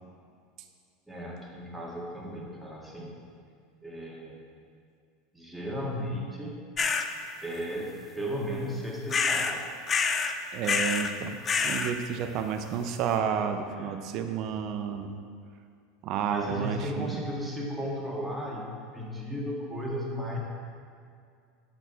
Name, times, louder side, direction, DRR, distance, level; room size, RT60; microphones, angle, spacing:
voice 1, 1.1-3.1 3.8-4.4 5.3-6.6 7.4-9.6 13.8-14.0 16.3-20.4, equal, 5° right, -4 dB, 1.8 m, -35 dB
sound 1, 6.8-7.1 9.1-9.6 9.9-10.3 10.6-11.1 11.5-11.9, left 5 dB, 30° left, 0.5 m, -26 dB
voice 2, 10.5-15.2 16.0-17.3, right 7 dB, 55° right, 7 dB, 0.6 m, -31 dB
7.1 x 6.3 x 4.0 m, 2.3 s
hypercardioid pair, 85°, 0 cm